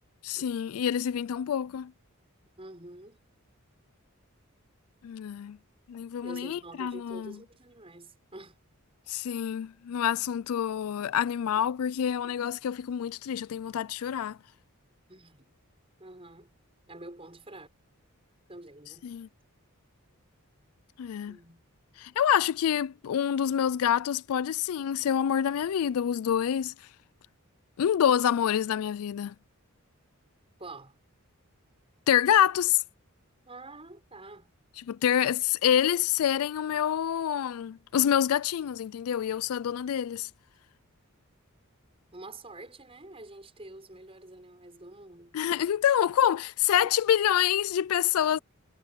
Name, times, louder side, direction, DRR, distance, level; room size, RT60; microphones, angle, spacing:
voice 1, 0.2-1.9 5.0-5.6 5.9-7.4 9.1-14.4 19.0-19.3 21.0-21.4 22.0-26.7 27.8-29.3 32.1-32.8 34.9-40.3 45.3-48.4, left 9 dB, 75° left, 0.3 m, -27 dB
voice 2, 2.6-3.2 6.2-8.6 11.6-11.7 12.2-12.3 15.1-15.5 16.0-16.5 16.9-17.7 18.5-19.1 21.3-21.6 30.6-31.0 33.5-34.5 42.1-45.3 46.8-46.9 48.2-48.4, right 2 dB, 25° right, 5.9 m, -47 dB
head